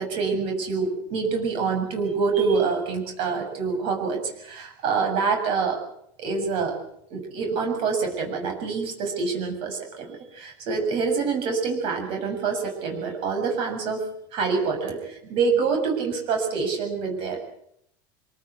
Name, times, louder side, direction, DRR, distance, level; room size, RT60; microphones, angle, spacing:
voice 1, 0.0-5.8 6.2-6.8 7.1-14.0 14.3-17.4, right 5 dB, 55° right, 3 dB, 7.4 m, -26 dB
26.0 x 19.5 x 8.3 m, 0.72 s
supercardioid pair, 130°, 11 cm